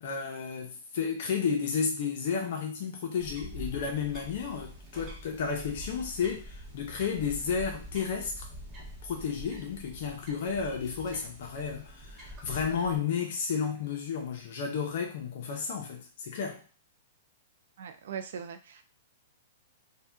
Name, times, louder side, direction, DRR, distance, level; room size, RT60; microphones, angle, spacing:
voice 1, 0.0-8.5 9.0-16.6, left 6 dB, 60° left, 2 dB, 0.7 m, -32 dB
sound 1, 3.2-13.0, equal, 15° right, 0.9 m, -45 dB
voice 2, 17.8-18.8, right 7 dB, 70° right, 8 dB, 0.4 m, -40 dB
2.7 x 2.2 x 3.4 m, 0.37 s
hypercardioid pair, 155°, 0 cm